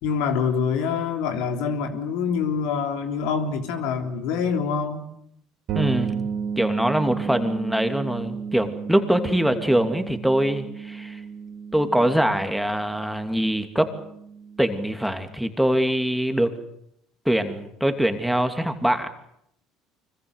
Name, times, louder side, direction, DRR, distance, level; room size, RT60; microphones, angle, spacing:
voice 1, 0.0-5.0, left 6 dB, 75° left, 5 dB, 3.4 m, -25 dB
voice 2, 5.7-6.3 6.6-11.2 11.7-13.9 14.6-16.5 17.2-19.1, right 1 dB, ahead, 7 dB, 2.8 m, -23 dB
sound 1, 5.7-15.3, right 6 dB, 60° right, 4.4 m, -33 dB
25.0 x 23.0 x 8.1 m, 0.75 s
hypercardioid pair, 75°, 0 cm